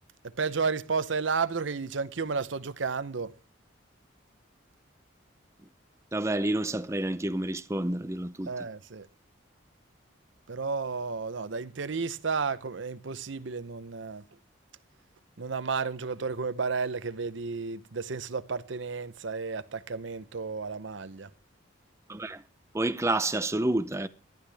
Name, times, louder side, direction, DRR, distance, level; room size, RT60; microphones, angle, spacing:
voice 1, 0.2-3.4 8.5-9.1 10.5-14.3 15.4-21.3, right 5 dB, 70° right, 0.7 m, -32 dB
voice 2, 6.1-8.5 22.1-22.4 22.7-24.1, right 1 dB, 15° right, 0.6 m, -29 dB
18.5 x 12.0 x 3.4 m
head